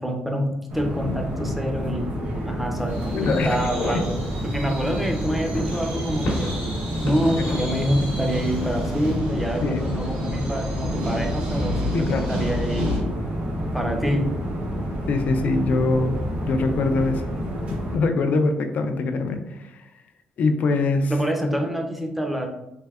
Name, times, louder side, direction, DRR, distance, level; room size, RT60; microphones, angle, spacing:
voice 1, 0.0-2.1 2.4-4.2 4.4-6.6 7.0-12.9 13.7-14.3 21.1-22.5, equal, 5° right, 3 dB, 0.5 m, -26 dB
sound 1, 0.7-18.0, equal, 50° right, 1.0 m, -29 dB
sound 2, 2.8-3.0 3.2-4.0 4.5-4.6 5.4-6.6 7.0-7.8 8.5-9.0, left 1 dB, 85° left, 0.9 m, -31 dB
Underground Trains Binaural, 2.9-13.0, left 1 dB, 85° right, 1.2 m, -32 dB
voice 2, 3.1-3.5 3.9-4.0 9.6-9.8 11.9-12.2 15.1-16.2 16.5-17.3 17.9-19.8 20.4-21.1, left 3 dB, 55° left, 6 dB, 0.4 m, -23 dB
3.3 x 2.6 x 2.3 m, 0.89 s
cardioid pair, 90°, 3 cm